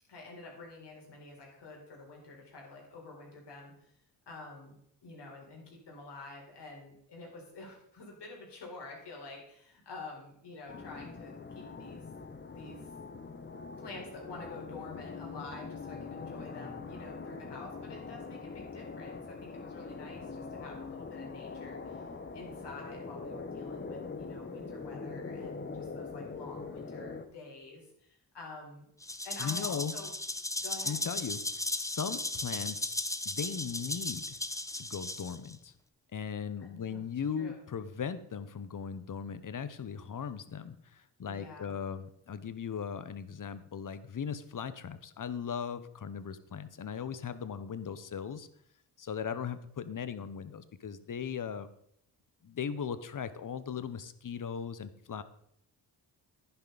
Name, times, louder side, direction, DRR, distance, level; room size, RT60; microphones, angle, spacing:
voice 1, 0.1-3.7 4.3-4.8 5.0-12.0 12.5-12.9 13.8-22.1 22.3-28.9 29.2-30.1 30.6-31.0 36.6-37.0 37.4-37.6 41.2-41.7, left 3 dB, 80° left, -1 dB, 4.4 m, -48 dB
Train and plane, 10.7-27.3, left 4 dB, 25° left, 1.1 m, -43 dB
Rattle (instrument), 29.0-35.5, left 1 dB, 10° left, 0.8 m, -36 dB
voice 2, 29.4-29.9 30.8-32.9 33.2-34.4 34.7-35.7 36.1-48.5 49.0-51.7 52.4-55.2, left 7 dB, 50° left, 13 dB, 1.0 m, -38 dB
11.0 x 10.5 x 4.1 m, 0.71 s
cardioid pair, 75°, 41 cm